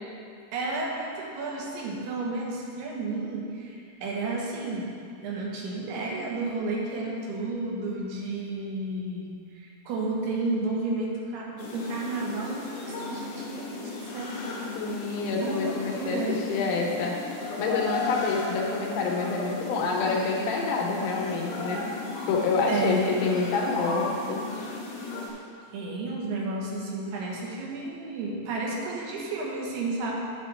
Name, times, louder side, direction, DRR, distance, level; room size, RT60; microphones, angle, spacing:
voice 1, 0.5-4.9 5.2-14.4 15.4-16.4 22.7-23.2 25.7-30.1, right 2 dB, 80° right, -2 dB, 3.1 m, -32 dB
sound 1, 11.6-25.3, left 3 dB, 60° left, 1.9 m, -35 dB
voice 2, 14.8-17.2 17.6-21.9 22.3-24.5, left 4 dB, 90° left, -1 dB, 3.1 m, -27 dB
9.8 x 8.3 x 3.2 m, 2.3 s
omnidirectional pair, 4.6 m